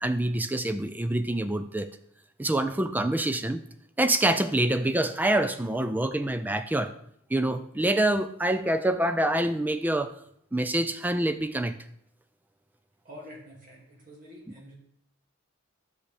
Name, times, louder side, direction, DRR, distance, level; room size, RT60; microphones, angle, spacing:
voice 1, 0.0-1.9 2.4-3.6 4.0-6.9 7.3-10.1 10.5-11.8, right 1 dB, 10° right, 9 dB, 0.3 m, -26 dB
voice 2, 13.0-14.7, equal, 40° right, -3 dB, 2.4 m, -47 dB
9.7 x 6.4 x 3.4 m, 0.70 s
head